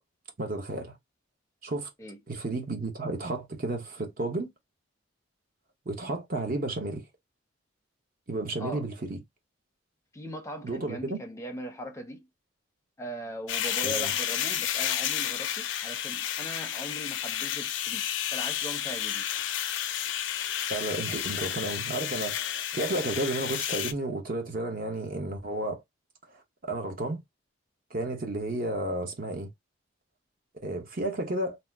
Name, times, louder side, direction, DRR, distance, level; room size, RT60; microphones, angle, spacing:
voice 1, 0.4-1.0 1.6-1.9 2.3-4.5 5.9-7.1 8.3-9.2 10.6-11.2 13.8-14.1 20.7-25.8 26.3-27.2 27.9-29.5 30.6-31.6, right 2 dB, 45° right, 0.8 m, -32 dB
voice 2, 10.1-12.3 13.0-19.2, equal, 15° left, 0.6 m, -40 dB
sound 1, 13.5-23.9, left 10 dB, 65° left, 0.4 m, -31 dB
2.7 x 2.0 x 3.4 m
head